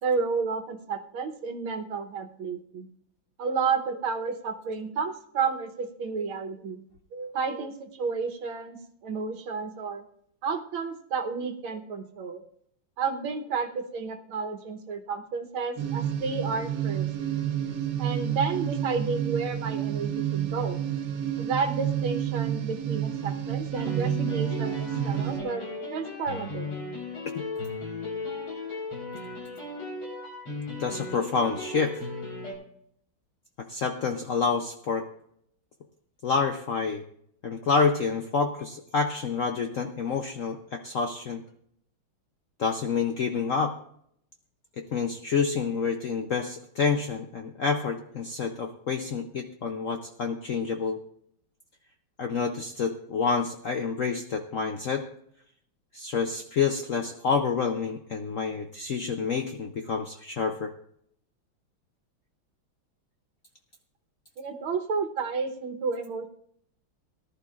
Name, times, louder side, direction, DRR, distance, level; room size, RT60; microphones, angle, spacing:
voice 1, 0.0-2.9 3.4-6.8 7.1-10.0 10.4-12.4 13.0-17.1 18.0-20.8 21.4-25.6 25.9-26.7 64.4-66.3, right 5 dB, 85° right, 5 dB, 1.9 m, -31 dB
sound 1, 15.8-25.4, right 10 dB, 55° right, 1.4 m, -29 dB
sound 2, 23.7-32.5, left 3 dB, 90° left, 4.9 m, -36 dB
voice 2, 30.8-32.0 33.7-35.1 36.2-37.0 37.4-41.4 42.6-43.7 44.8-51.0 52.2-55.1 55.9-60.7, left 5 dB, 65° left, 5 dB, 0.7 m, -28 dB
18.5 x 11.5 x 2.4 m, 0.69 s
omnidirectional pair, 2.2 m